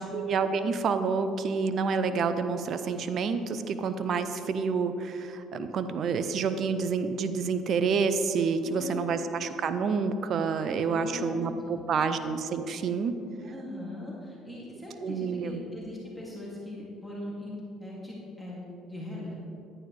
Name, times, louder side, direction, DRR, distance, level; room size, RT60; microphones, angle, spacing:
voice 1, 0.0-13.1 15.0-15.6, right 5 dB, 55° right, 10 dB, 0.6 m, -28 dB
voice 2, 8.6-9.0 10.6-11.8 13.5-19.3, left 1 dB, ahead, -6 dB, 2.6 m, -40 dB
11.0 x 9.5 x 3.3 m, 2.7 s
supercardioid pair, 70°, 0 cm